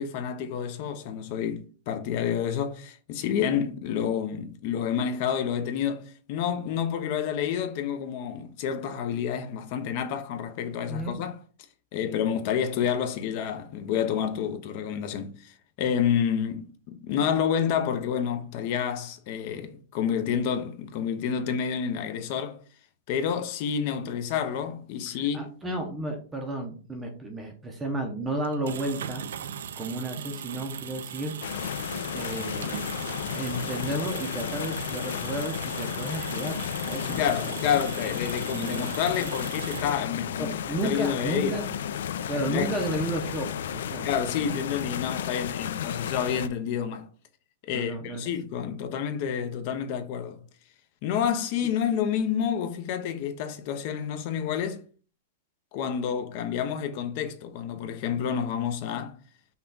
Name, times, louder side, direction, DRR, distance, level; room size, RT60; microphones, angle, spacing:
voice 1, 0.0-11.3 11.9-22.6 23.1-25.5 37.1-40.5 40.8-41.6 42.5-42.7 44.0-47.1 47.7-50.4 51.0-54.8 55.7-59.2, left 8 dB, 45° left, 0.6 m, -29 dB
voice 2, 10.9-11.2 25.1-29.3 29.8-31.3 31.7-32.8 33.3-37.6 38.5-38.9 40.4-41.7 42.3-44.7 47.7-48.3 51.6-51.7, right 1 dB, 10° right, 0.6 m, -33 dB
sound 1, 28.4-40.3, right 9 dB, 85° right, 0.4 m, -39 dB
sound 2, 31.4-46.5, left 9 dB, 75° left, 0.3 m, -33 dB
5.5 x 2.3 x 3.9 m
supercardioid pair, 160°, 0 cm